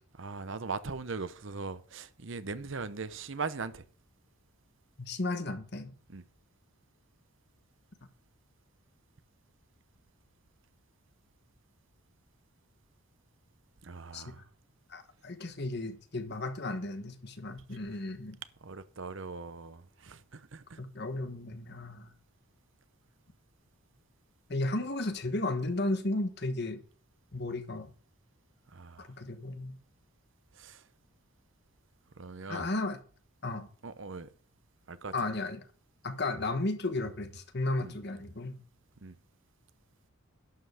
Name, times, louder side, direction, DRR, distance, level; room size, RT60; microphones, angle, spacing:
voice 1, 0.2-3.9 6.1-6.2 13.8-14.5 18.6-20.8 28.7-29.1 30.5-30.9 32.2-32.7 33.8-34.3 34.9-35.1 37.8-37.9 39.0-39.1, right 4 dB, 60° right, 0.8 m, -40 dB
voice 2, 5.0-5.9 14.1-14.3 14.9-18.4 20.8-22.1 24.5-26.8 27.3-27.9 29.0-29.8 32.5-33.0 33.4-33.7 35.1-35.7 36.0-38.6, left 2 dB, 50° left, 1.3 m, -34 dB
11.5 x 5.7 x 6.4 m
head